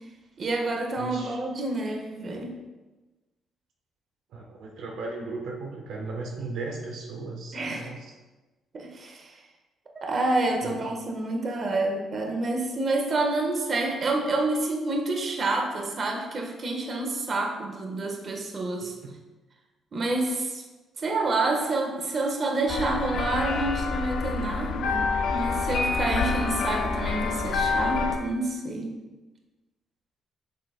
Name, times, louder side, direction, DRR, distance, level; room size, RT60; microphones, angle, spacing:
voice 1, 0.4-2.6 7.5-7.9 8.7-9.4 9.9-18.9 19.9-20.6 21.0-29.0, right 2 dB, 45° right, 2 dB, 1.2 m, -28 dB
voice 2, 1.0-1.4 4.3-8.1 10.6-10.8, right 3 dB, 80° right, 0 dB, 1.0 m, -36 dB
sound 1, 22.7-28.2, left 4 dB, 70° left, 0.8 m, -27 dB
8.0 x 6.7 x 2.2 m, 1.2 s
cardioid pair, 90°, 0 cm